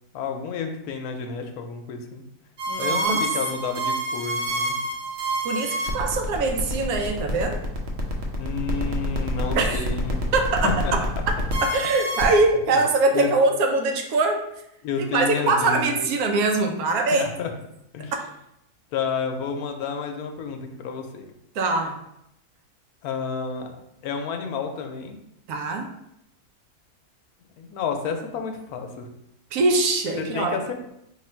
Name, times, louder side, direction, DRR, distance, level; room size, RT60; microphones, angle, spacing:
voice 1, 0.1-2.2 2.8-4.8 8.3-10.2 10.6-10.9 13.1-13.3 14.8-16.1 17.1-17.5 17.9-18.1 18.9-21.3 23.0-25.2 27.6-29.1 30.2-30.7, left 5 dB, 80° left, 5 dB, 1.0 m, -30 dB
sound 1, 2.6-12.4, right 1 dB, 60° right, 0.8 m, -27 dB
voice 2, 2.7-3.2 5.4-7.6 9.5-9.8 10.3-11.0 11.6-14.4 15.1-17.3 21.5-22.0 25.5-25.9 29.5-30.6, right 3 dB, 75° right, 4 dB, 1.1 m, -22 dB
3.5 x 2.4 x 4.3 m, 0.80 s
omnidirectional pair, 1.6 m